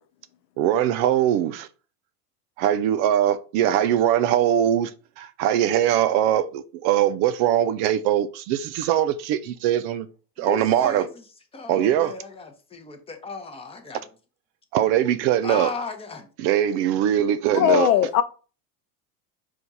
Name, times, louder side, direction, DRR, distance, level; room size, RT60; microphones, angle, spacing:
voice 1, 0.6-1.7 2.6-4.9 5.2-10.1 10.4-11.1 11.7-12.1 14.7-15.7 16.4-17.9, right 11 dB, 50° right, 0.4 m, -21 dB
voice 2, 10.4-11.1 11.5-14.0 15.4-16.3, left 4 dB, 10° left, 0.7 m, -35 dB
voice 3, 17.5-18.2, left 12 dB, 85° left, 0.6 m, -19 dB
4.3 x 2.5 x 4.0 m
supercardioid pair, 110°, 49 cm